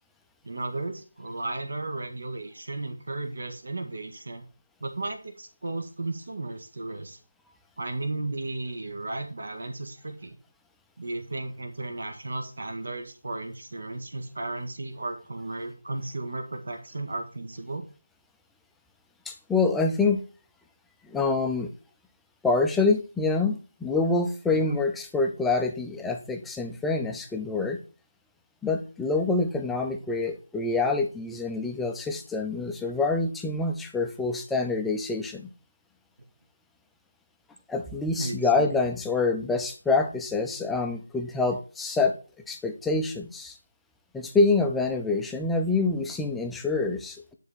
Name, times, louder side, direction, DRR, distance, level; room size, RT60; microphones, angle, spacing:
voice 1, 0.4-4.4 4.8-7.2 7.8-10.4 11.0-17.8 24.5-24.8 38.2-38.4, right 2 dB, 60° right, 5 dB, 1.8 m, -34 dB
voice 2, 19.2-20.2 21.0-21.7 22.4-27.8 28.6-35.5 37.7-42.1 42.5-43.6 44.1-47.3, left 3 dB, 5° left, 3 dB, 0.7 m, -26 dB
10.5 x 3.7 x 6.4 m, 0.35 s
figure-of-eight pair, 165°, 0 cm